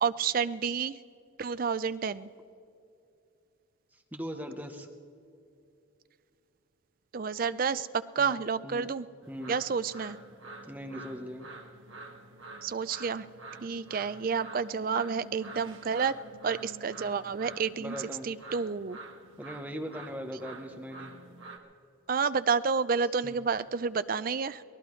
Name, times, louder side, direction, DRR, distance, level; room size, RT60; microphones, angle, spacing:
voice 1, 0.0-1.0 1.4-2.3 7.1-9.1 9.5-10.2 12.6-13.3 13.6-16.2 16.4-18.0 18.2-19.0 22.1-24.6, right 5 dB, 45° right, 14 dB, 0.4 m, -30 dB
voice 2, 3.9-4.9 8.2-8.4 8.6-8.9 9.3-9.6 10.7-11.5 17.8-18.3 19.4-21.1 23.2-23.3, equal, 10° right, 4 dB, 0.9 m, -40 dB
sound 1, 9.2-21.6, right 3 dB, 70° right, 1.4 m, -47 dB
23.5 x 18.5 x 3.2 m, 2.6 s
head